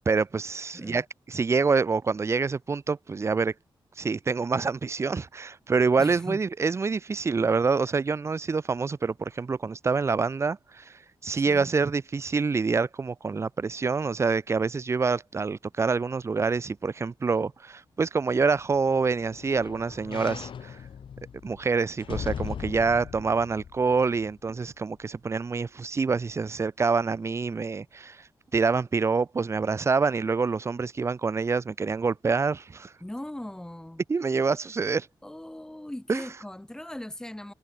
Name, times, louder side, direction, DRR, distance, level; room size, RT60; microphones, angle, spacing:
voice 1, 0.1-3.5 4.0-10.9 11.2-20.8 21.4-28.2 28.5-32.9 34.1-35.1 36.1-36.2, right 4 dB, 30° right, 1.0 m, -26 dB
voice 2, 0.7-1.0 6.0-6.4 11.5-11.7 33.0-34.0 35.2-37.5, left 1 dB, 5° left, 4.6 m, -39 dB
sound 1, 18.5-24.7 25.2-25.3, left 7 dB, 70° left, 2.4 m, -40 dB
wide cardioid pair, 175°, 9 cm